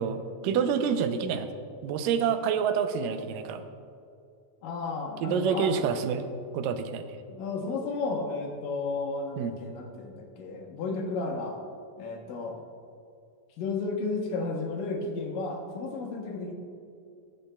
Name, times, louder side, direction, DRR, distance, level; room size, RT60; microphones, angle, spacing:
voice 1, 0.0-1.5 1.8-3.6 5.2-6.3 6.5-7.0 9.4-9.5, right 7 dB, 85° right, 9 dB, 2.2 m, -27 dB
voice 2, 4.6-5.9 7.3-11.6 12.0-12.6 13.6-16.5, left 3 dB, 80° left, 0 dB, 2.6 m, -33 dB
19.0 x 7.3 x 2.2 m, 2.5 s
omnidirectional pair, 3.9 m